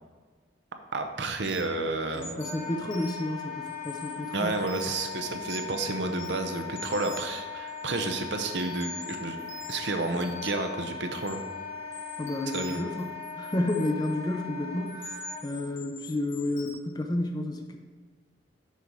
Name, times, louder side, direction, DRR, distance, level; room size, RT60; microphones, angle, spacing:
voice 1, 0.9-2.4 4.3-9.4 9.7-11.4 12.5-12.9, right 3 dB, 70° right, 6 dB, 0.7 m, -31 dB
sound 1, 1.4-1.8 2.1-3.3 3.7-5.0 5.4-5.8 6.1-7.4 7.7-8.1 8.6-10.7 11.1-11.4 11.9-14.1 14.9-16.7, left 3 dB, 90° left, 1.2 m, -45 dB
voice 2, 2.1-4.6 12.2-17.8, left 1 dB, 20° left, 4 dB, 0.5 m, -31 dB
Wind instrument woodwind instrument, 2.4-15.4, left 6 dB, 50° right, 1.0 m, -39 dB
6.6 x 5.3 x 4.7 m, 1.5 s
head